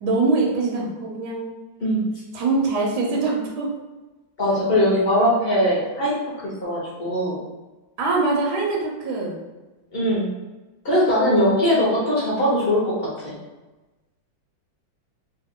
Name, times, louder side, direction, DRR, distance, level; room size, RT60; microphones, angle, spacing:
voice 1, 0.0-1.5 2.3-3.7 8.0-9.4, right 3 dB, 70° right, -2 dB, 1.1 m, -23 dB
voice 2, 4.4-6.2 6.4-7.4 9.9-10.3 10.8-13.3, equal, 40° left, -6 dB, 0.8 m, -21 dB
3.1 x 2.4 x 3.6 m, 1.2 s
omnidirectional pair, 2.2 m